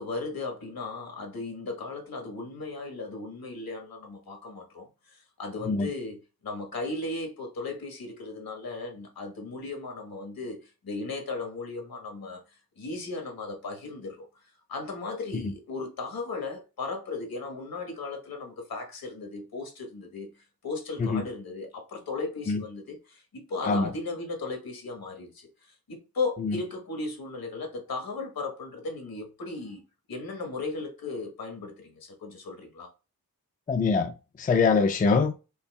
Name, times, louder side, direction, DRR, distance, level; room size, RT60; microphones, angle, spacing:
voice 1, 0.0-6.2 6.4-12.4 12.8-14.3 14.7-20.3 20.6-25.5 25.9-29.8 30.1-32.9, left 3 dB, 75° left, 1.3 m, -36 dB
voice 2, 33.7-34.1 34.4-35.3, left 4 dB, 25° left, 0.4 m, -23 dB
5.3 x 2.3 x 2.3 m
wide cardioid pair, 90°, 36 cm